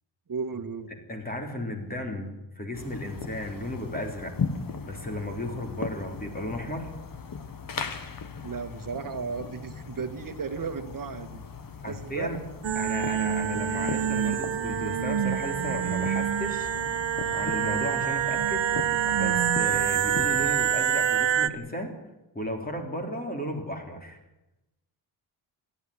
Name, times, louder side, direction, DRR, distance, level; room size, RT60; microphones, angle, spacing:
voice 1, 0.3-0.9 8.4-11.4 11.8-12.3, right 5 dB, 45° right, 9 dB, 1.7 m, -34 dB
voice 2, 1.1-4.4 4.8-6.9 11.8-12.4 12.8-16.7 17.3-18.7 19.1-21.9 22.4-24.2, equal, 20° left, 3 dB, 3.5 m, -34 dB
sound 1, 2.7-20.7, left 5 dB, 45° left, 1.5 m, -38 dB
sound 2, 12.6-21.5, right 9 dB, 75° right, 1.2 m, -26 dB
28.0 x 11.5 x 10.0 m, 0.96 s
wide cardioid pair, 175°, 46 cm